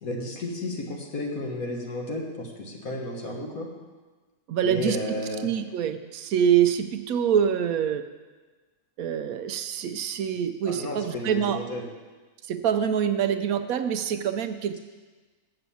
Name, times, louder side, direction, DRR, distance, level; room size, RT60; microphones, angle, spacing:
voice 1, 0.0-3.7 4.6-5.5 10.7-11.8, left 1 dB, 70° left, 0 dB, 1.9 m, -32 dB
voice 2, 4.5-5.2 5.4-8.0 9.0-11.6 12.5-14.8, right 8 dB, 75° right, 9 dB, 1.0 m, -25 dB
8.7 x 7.0 x 7.0 m, 1.3 s
omnidirectional pair, 1.6 m